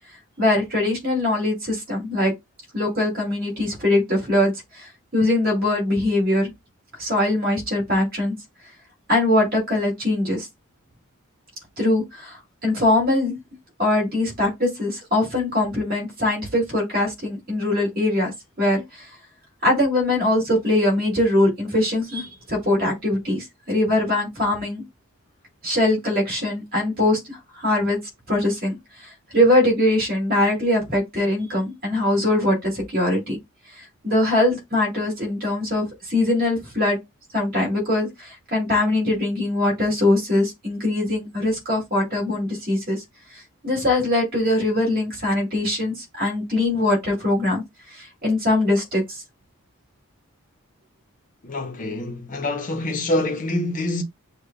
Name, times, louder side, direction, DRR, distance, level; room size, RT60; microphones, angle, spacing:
voice 1, 0.4-2.3 2.7-6.5 7.0-8.4 9.1-10.5 11.8-13.4 13.8-19.1 19.6-24.8 25.6-28.0 28.3-33.4 33.8-37.0 37.3-43.0 43.3-47.6 47.9-49.2, left 1 dB, 40° right, 2.3 m, -22 dB
voice 2, 51.4-54.0, left 1 dB, 35° left, 0.7 m, -26 dB
6.7 x 2.3 x 2.2 m
head